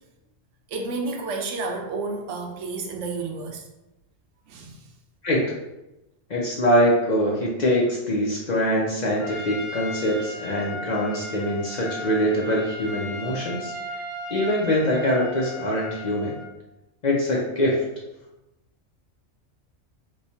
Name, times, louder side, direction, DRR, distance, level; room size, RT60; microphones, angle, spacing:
voice 1, 0.7-3.7 4.5-4.9, right 3 dB, 75° right, 3 dB, 0.9 m, -31 dB
voice 2, 6.3-13.7 14.3-16.4 17.0-17.8, equal, 50° left, -4 dB, 0.6 m, -23 dB
Trumpet, 9.2-16.5, left 1 dB, 80° left, 1.4 m, -36 dB
3.1 x 2.3 x 4.1 m, 0.95 s
omnidirectional pair, 1.3 m